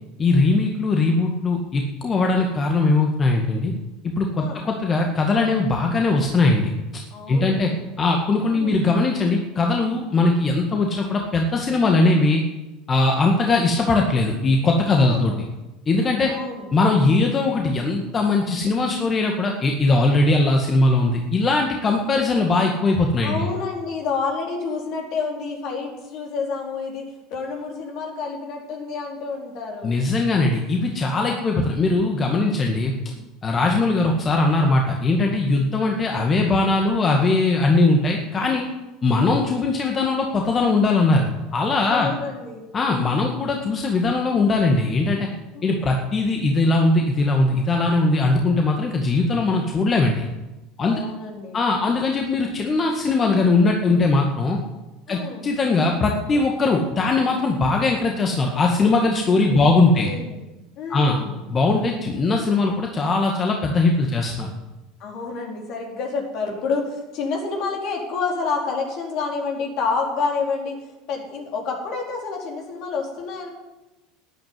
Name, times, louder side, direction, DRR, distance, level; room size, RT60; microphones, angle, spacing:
voice 1, 0.2-3.7 4.2-6.7 7.3-7.7 8.0-12.4 12.9-15.3 15.9-16.3 16.7-23.5 29.8-32.9 33.4-38.7 39.0-42.1 42.7-45.3 45.6-50.3 50.8-51.0 51.5-54.6 55.1-60.1 60.9-61.2 61.5-64.5, left 3 dB, 30° left, 2 dB, 1.9 m, -20 dB
voice 2, 7.1-7.8 8.5-8.8 14.9-15.4 16.3-16.7 23.2-27.0 27.3-29.9 33.1-33.3 36.2-36.3 41.8-42.6 45.8-45.9 50.8-51.6 55.1-55.5 59.5-60.4 60.8-61.4 65.0-70.8 71.1-73.5, left 4 dB, 55° left, 0 dB, 4.3 m, -29 dB
12.5 x 9.3 x 9.6 m, 1.1 s
hypercardioid pair, 80°, 0 cm